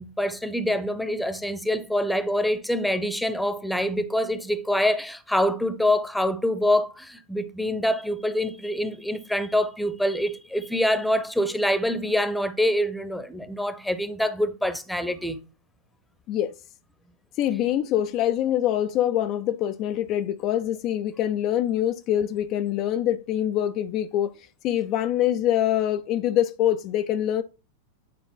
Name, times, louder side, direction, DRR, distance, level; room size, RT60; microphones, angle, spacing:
voice 1, 0.0-15.4, left 1 dB, ahead, 0.8 m, -25 dB
voice 2, 17.4-27.4, left 11 dB, 40° left, 0.4 m, -24 dB
9.5 x 3.8 x 3.8 m
figure-of-eight pair, 90°, 0 cm